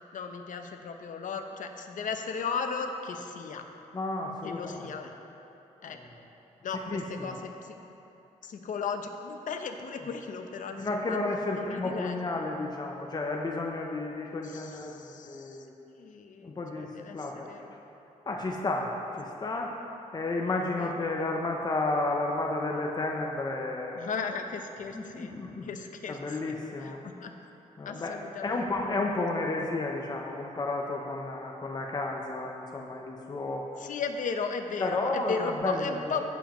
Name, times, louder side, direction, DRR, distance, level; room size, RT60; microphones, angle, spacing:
voice 1, 0.1-3.7 4.4-5.1 5.8-6.0 6.6-7.7 8.4-11.2 11.5-12.4 14.4-17.7 20.8-20.9 23.9-25.4 25.6-27.3 27.8-29.0 33.8-36.2, left 5 dB, 70° left, 6 dB, 0.7 m, -36 dB
voice 2, 3.9-4.9 5.9-6.0 6.9-7.4 10.8-15.7 16.4-17.5 18.3-19.8 20.1-24.1 24.9-25.7 26.1-27.0 27.8-33.7 34.8-36.2, left 2 dB, 30° left, 1 dB, 0.8 m, -32 dB
16.0 x 7.1 x 3.1 m, 2.9 s
cardioid pair, 105°, 14 cm